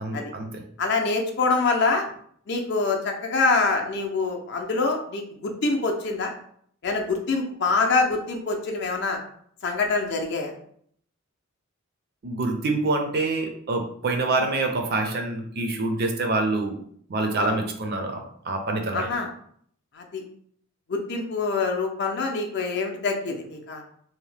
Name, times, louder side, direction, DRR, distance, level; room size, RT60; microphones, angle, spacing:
voice 1, 0.0-0.6 12.2-16.7 17.1-19.1, right 2 dB, 50° right, 3 dB, 0.4 m, -26 dB
voice 2, 0.8-2.0 2.5-6.3 6.8-9.2 9.6-10.5 17.4-17.6 18.9-19.3 20.0-20.2 20.9-23.8, left 3 dB, 55° left, 3 dB, 0.5 m, -25 dB
2.7 x 2.1 x 3.2 m, 0.63 s
head